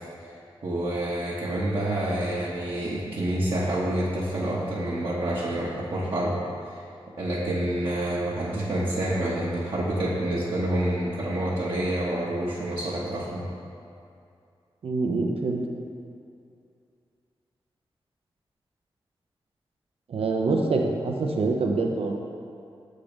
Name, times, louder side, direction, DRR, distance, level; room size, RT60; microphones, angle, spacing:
voice 1, 0.6-6.8 7.2-13.5, right 1 dB, 60° right, -8 dB, 1.0 m, -28 dB
voice 2, 14.8-15.6 20.1-22.2, right 3 dB, 85° right, 2 dB, 0.6 m, -25 dB
7.2 x 3.7 x 5.1 m, 2.5 s
wide cardioid pair, 70°, 10 cm